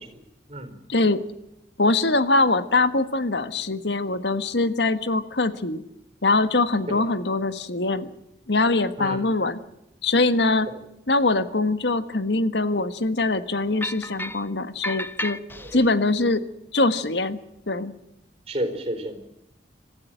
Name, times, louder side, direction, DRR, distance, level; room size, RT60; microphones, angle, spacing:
voice 1, 0.9-1.2 1.8-5.8 6.2-8.1 8.5-9.6 10.0-10.7 11.1-15.4 15.7-16.4 16.7-17.4 17.7-17.9, left 2 dB, 75° left, 12 dB, 1.6 m, -23 dB
sound 1, 13.8-14.5 14.8-15.9, left 1 dB, 10° left, 0.9 m, -32 dB
voice 2, 18.5-19.2, right 1 dB, 35° right, 8 dB, 4.5 m, -31 dB
26.5 x 15.0 x 9.0 m, 0.83 s
head